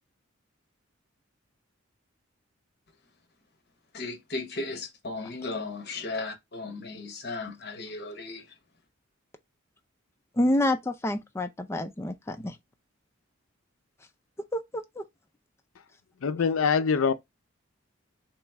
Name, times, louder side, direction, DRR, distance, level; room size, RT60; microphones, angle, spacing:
voice 1, 3.9-8.4, left 3 dB, 55° left, 0.9 m, -36 dB
voice 2, 10.4-12.6 14.5-15.0, left 1 dB, 15° left, 0.4 m, -28 dB
voice 3, 16.2-17.1, left 6 dB, 80° left, 0.4 m, -24 dB
3.2 x 3.0 x 3.4 m
head